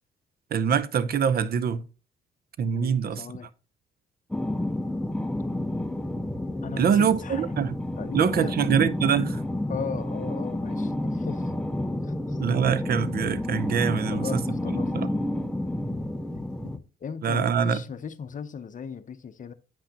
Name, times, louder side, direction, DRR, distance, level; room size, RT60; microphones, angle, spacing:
voice 1, 0.5-1.9 2.6-3.3 6.8-7.8 8.1-9.4 12.4-14.4 14.7-15.1 17.2-17.8, right 7 dB, 50° right, 0.6 m, -24 dB
voice 2, 2.7-3.5 6.6-7.6 8.0-8.6 9.7-11.5 12.0-12.4 14.1-14.9 16.3-19.5, left 6 dB, 40° left, 0.7 m, -37 dB
sound 1, 4.3-16.8, left 1 dB, 5° left, 0.6 m, -30 dB
8.8 x 5.8 x 2.9 m
cardioid pair, 90°, 20 cm